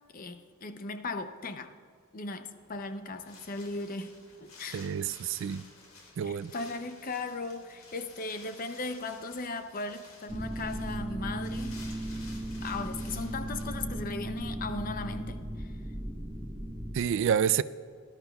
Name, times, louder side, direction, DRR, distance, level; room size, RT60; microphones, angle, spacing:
voice 1, 0.1-1.7 2.1-4.9 6.2-11.9 12.6-15.7, left 3 dB, 40° left, 0.6 m, -38 dB
Wind, 2.4-13.6, left 3 dB, 90° left, 2.2 m, -53 dB
voice 2, 4.7-5.6 6.2-6.5 16.9-17.6, right 8 dB, 65° right, 0.3 m, -28 dB
sound 1, 10.3-16.9, right 1 dB, 5° right, 1.2 m, -36 dB
18.5 x 12.0 x 2.3 m
head